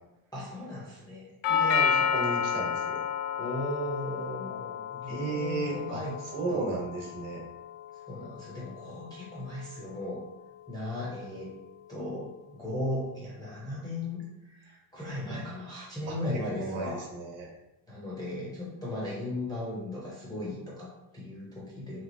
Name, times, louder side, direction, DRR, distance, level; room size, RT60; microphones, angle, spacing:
voice 1, 0.3-1.3 3.4-6.1 6.5-6.6 8.1-10.2 10.7-11.5 11.9-17.0 17.9-22.0, left 1 dB, 10° left, -8 dB, 0.3 m, -37 dB
Doorbell, 1.4-9.5, left 7 dB, 90° left, 0.6 m, -32 dB
voice 2, 1.5-3.0 5.1-6.0 6.3-7.4 16.1-16.2 16.6-17.5, right 3 dB, 60° right, -1 dB, 1.0 m, -34 dB
3.0 x 2.7 x 2.5 m, 0.96 s
cardioid pair, 165°, 48 cm